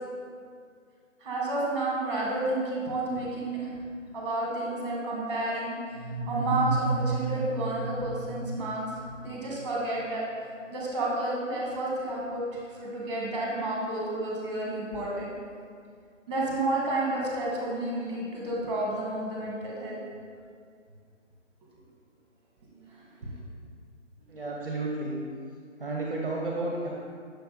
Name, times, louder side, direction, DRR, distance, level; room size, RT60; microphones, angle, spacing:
voice 1, 1.2-3.8 4.1-5.7 6.3-8.8 9.2-10.3 10.7-12.4 12.8-15.3 16.3-20.0 22.7-23.3, right 2 dB, 20° right, -4 dB, 1.2 m, -31 dB
sound 1, 5.9-9.6, right 3 dB, 40° left, 1.0 m, -32 dB
voice 2, 24.3-25.2 25.8-26.9, right 2 dB, 45° right, -2 dB, 0.7 m, -32 dB
6.4 x 3.3 x 4.6 m, 2.2 s
figure-of-eight pair, 150°, 38 cm